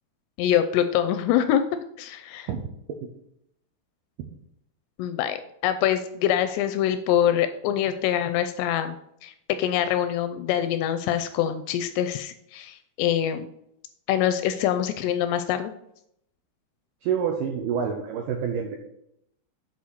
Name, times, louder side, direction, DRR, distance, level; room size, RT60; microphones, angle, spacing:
voice 1, 0.4-1.6 2.0-2.5 5.0-9.0 9.2-13.5 14.1-15.7, left 10 dB, 85° left, 10 dB, 2.5 m, -24 dB
voice 2, 17.0-18.8, right 7 dB, 90° right, 2 dB, 1.9 m, -27 dB
8.4 x 4.3 x 6.3 m, 0.75 s
omnidirectional pair, 5.1 m